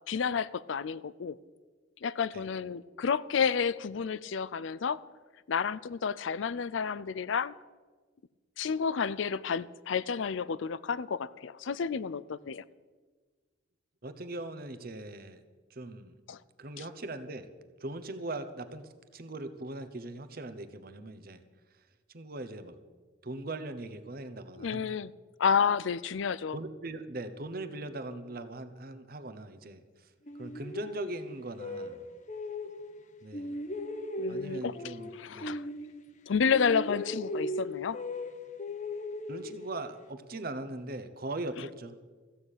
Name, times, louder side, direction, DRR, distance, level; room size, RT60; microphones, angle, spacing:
voice 1, 0.1-1.4 2.0-5.0 5.5-7.5 8.6-12.6 16.3-16.4 24.6-25.1 25.4-26.6 34.2-35.6 36.3-38.0, left 6 dB, 75° left, 19 dB, 0.5 m, -30 dB
voice 2, 14.0-15.4 15.7-16.1 16.6-17.5 17.8-21.4 22.1-22.8 23.2-24.8 26.5-29.8 30.3-32.0 33.2-33.5 34.3-35.6 39.3-42.0, right 2 dB, 50° right, 10 dB, 0.9 m, -40 dB
sound 1, 30.3-33.0 33.3-36.3 36.5-40.1, left 1 dB, 40° left, 0.9 m, -38 dB
14.5 x 6.6 x 9.0 m, 1.4 s
head